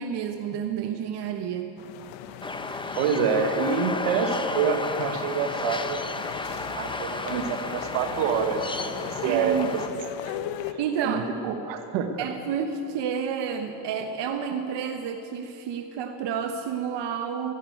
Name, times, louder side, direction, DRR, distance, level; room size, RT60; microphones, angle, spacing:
voice 1, 0.0-1.7 9.2-9.7 10.8-11.2 12.2-17.5, right 7 dB, 65° right, 5 dB, 1.2 m, -30 dB
sound 1, 1.8-10.7, left 9 dB, 80° left, 1.1 m, -38 dB
sound 2, 2.4-9.9, left 3 dB, 10° left, 0.7 m, -33 dB
voice 2, 3.0-6.1 6.8-9.8 10.2-10.4 10.7-10.8 11.0-12.2, right 6 dB, 85° right, 6 dB, 1.5 m, -27 dB
13.5 x 11.5 x 9.2 m, 2.8 s
supercardioid pair, 90°, 44 cm